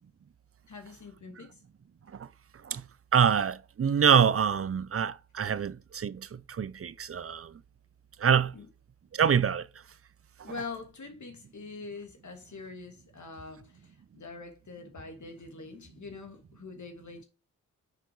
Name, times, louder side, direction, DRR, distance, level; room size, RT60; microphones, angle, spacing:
voice 1, 0.7-1.6 8.5-8.7 10.4-17.2, left 4 dB, 55° left, 2.7 m, -44 dB
voice 2, 3.1-7.5 8.2-8.5 9.1-9.7, right 7 dB, 40° right, 0.7 m, -25 dB
7.0 x 5.3 x 4.6 m
cardioid pair, 60°, 34 cm